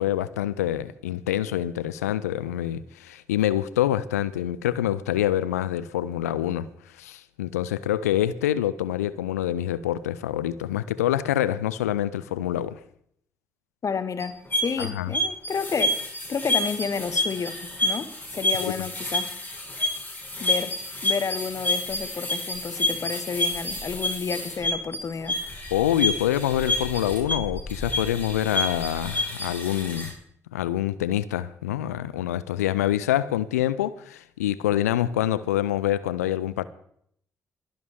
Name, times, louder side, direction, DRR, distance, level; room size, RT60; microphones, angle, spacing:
voice 1, 0.0-6.7 6.9-12.8 14.8-15.1 18.6-18.8 25.7-30.1 30.5-36.7, left 12 dB, 80° left, 0.4 m, -26 dB
voice 2, 13.8-16.0 16.3-19.3 20.4-20.8 21.0-25.4, left 5 dB, 40° left, 1.3 m, -31 dB
sound 1, 14.2-30.1, left 1 dB, 20° left, 6.4 m, -29 dB
22.0 x 10.5 x 3.7 m
figure-of-eight pair, 40°, 8 cm